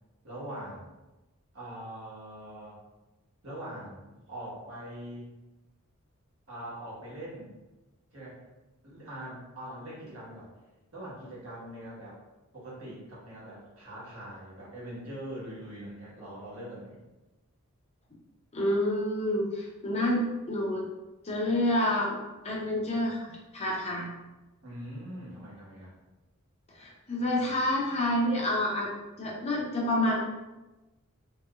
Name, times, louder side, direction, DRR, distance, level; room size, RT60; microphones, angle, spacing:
voice 1, 0.2-0.9 1.5-2.8 3.4-5.3 6.5-7.5 8.1-8.4 8.8-10.5 10.9-12.2 12.5-17.0 24.6-26.0, right 1 dB, 70° right, -7 dB, 1.2 m, -42 dB
voice 2, 18.5-20.9 21.2-22.1 22.4-24.1 26.8-28.9 29.2-30.2, left 1 dB, 30° left, -3 dB, 0.6 m, -28 dB
3.0 x 3.0 x 2.3 m, 1.1 s
head